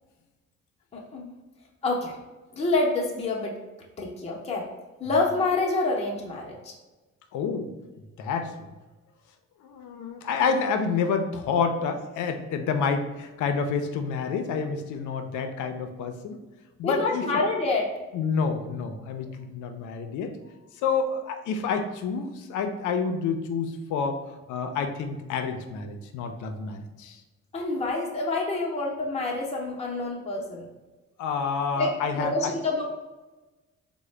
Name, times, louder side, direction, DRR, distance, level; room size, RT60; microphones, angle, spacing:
voice 1, 0.9-1.4 1.8-2.2 2.5-3.6 4.0-4.7 5.0-6.7 16.8-17.9 27.5-30.7 31.7-32.8, left 3 dB, 20° left, -2 dB, 0.6 m, -27 dB
voice 2, 7.3-7.7 8.2-8.7 9.6-16.4 16.8-17.3 18.1-20.3 20.8-24.2 24.5-27.2 31.2-32.5, left 5 dB, 75° left, 7 dB, 0.5 m, -28 dB
3.7 x 2.1 x 3.2 m, 1.2 s
cardioid pair, 90°, 30 cm